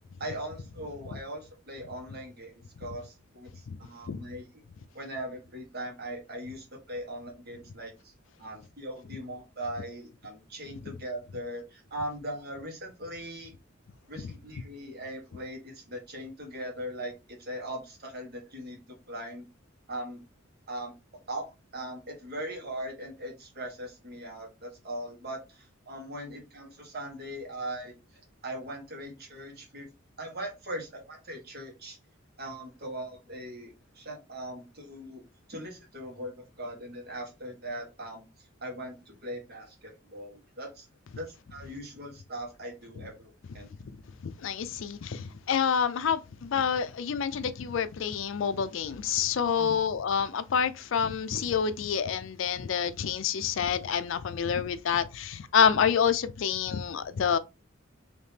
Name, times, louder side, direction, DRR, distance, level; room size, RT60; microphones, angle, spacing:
voice 1, 0.2-4.4 4.9-8.1 8.4-13.5 14.1-19.5 19.9-20.2 20.7-20.9 21.3-21.5 21.7-27.9 28.4-29.9 30.2-32.0 32.4-35.2 35.5-40.9 41.1-43.7 49.6-49.8, right 1 dB, 50° right, 1.3 m, -40 dB
voice 2, 44.2-57.4, left 7 dB, 65° left, 0.4 m, -28 dB
3.5 x 2.8 x 2.7 m
head